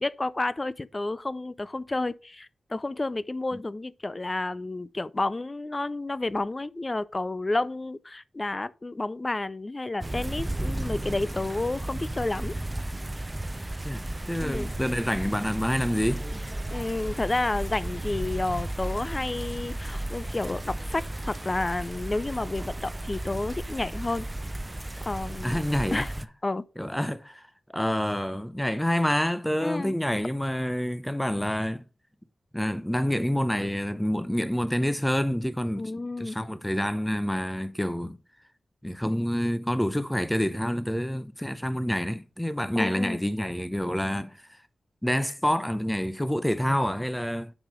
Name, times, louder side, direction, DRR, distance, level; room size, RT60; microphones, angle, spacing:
voice 1, 0.0-12.5 14.4-14.7 16.7-24.3 25.1-25.6 25.9-26.1 26.4-26.6 29.6-30.0 35.8-36.4 42.8-43.2, left 2 dB, 35° left, 0.5 m, -30 dB
sound 1, 10.0-26.2, right 1 dB, 25° right, 0.6 m, -34 dB
voice 2, 13.8-16.3 25.4-26.1 26.8-27.5 27.7-31.8 32.5-35.9 36.2-38.2 38.8-44.6 45.0-47.5, equal, 5° left, 0.8 m, -27 dB
7.3 x 5.0 x 5.4 m
cardioid pair, 45°, 0 cm